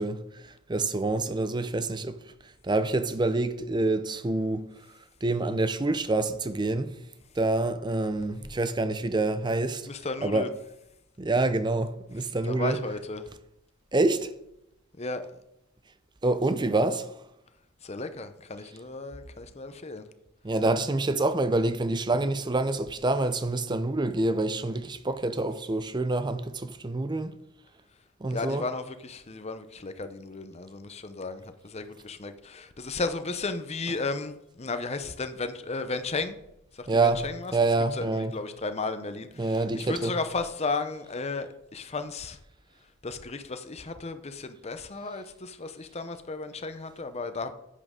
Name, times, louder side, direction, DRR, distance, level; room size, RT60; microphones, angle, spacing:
voice 1, 0.0-2.2 2.6-4.7 5.2-6.9 7.4-9.9 10.2-10.5 11.2-12.8 13.9-14.3 16.2-17.1 20.4-27.4 28.2-28.6 36.9-37.3 37.5-38.3 39.4-40.1, right 2 dB, 20° right, 0.5 m, -27 dB
voice 2, 9.9-10.5 12.4-13.2 15.0-15.2 17.8-20.1 28.3-36.4 36.7-37.5 37.9-42.4 43.0-47.5, left 3 dB, 30° left, 0.7 m, -34 dB
10.5 x 8.5 x 3.7 m
head